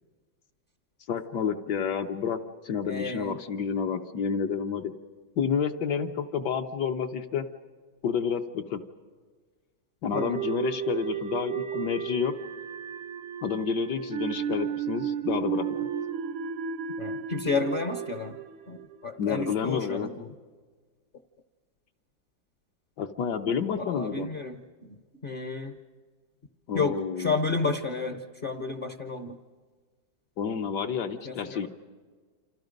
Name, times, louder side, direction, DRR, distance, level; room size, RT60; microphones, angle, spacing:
voice 1, 1.1-4.9 5.4-7.5 8.0-8.8 10.0-12.3 13.4-15.9 19.2-20.1 23.0-24.3 26.7-27.3 30.4-31.7, left 7 dB, 65° left, 4 dB, 1.4 m, -29 dB
voice 2, 2.8-3.4 10.1-10.4 17.0-18.4 18.7-20.3 23.8-24.6 24.9-25.7 26.7-29.4 31.2-31.7, left 4 dB, 40° left, 8 dB, 0.8 m, -31 dB
sound 1, 10.1-19.3, right 8 dB, 85° right, 1.7 m, -33 dB
27.5 x 27.0 x 5.2 m, 1.5 s
omnidirectional pair, 2.1 m